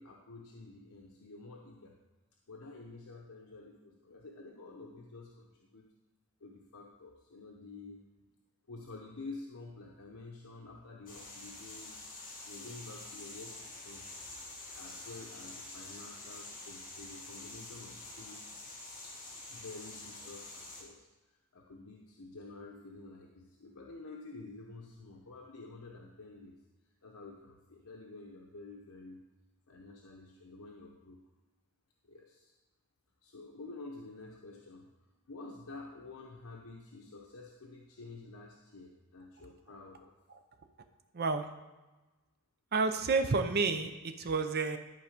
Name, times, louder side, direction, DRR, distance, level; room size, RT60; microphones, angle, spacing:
voice 1, 0.0-1.9 2.5-5.9 6.4-8.0 8.7-12.0 12.4-14.1 14.8-18.4 19.5-21.1 21.5-26.6 27.0-29.2 29.7-31.2 32.0-32.5 33.2-34.9 35.3-40.1, left 3 dB, 85° left, -1 dB, 0.9 m, -49 dB
sound 1, 11.1-20.8, left 2 dB, 40° left, 2.2 m, -47 dB
voice 2, 41.1-41.5 42.7-44.8, right 4 dB, 50° right, 7 dB, 0.7 m, -30 dB
12.0 x 4.8 x 5.1 m, 1.1 s
head